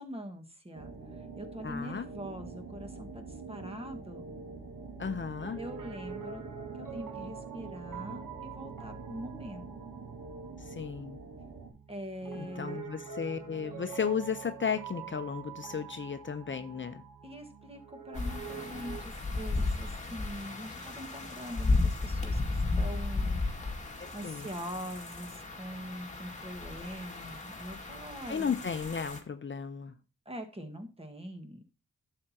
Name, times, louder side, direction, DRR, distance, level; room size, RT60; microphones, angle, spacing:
voice 1, 0.0-4.2 5.5-9.7 11.9-12.8 17.2-23.5 24.1-28.5 30.2-31.6, equal, 20° right, 1.7 m, -43 dB
sound 1, 0.7-11.7, right 4 dB, 65° right, 2.0 m, -45 dB
voice 2, 1.6-2.1 5.0-5.6 10.6-11.2 12.4-17.0 24.0-24.5 28.3-29.9, left 6 dB, 40° left, 0.7 m, -34 dB
Piano, 5.4-19.1, right 6 dB, 90° right, 1.1 m, -45 dB
sound 2, 18.1-29.2, left 3 dB, 25° left, 2.1 m, -34 dB
11.5 x 7.7 x 2.9 m
cardioid pair, 55°, 31 cm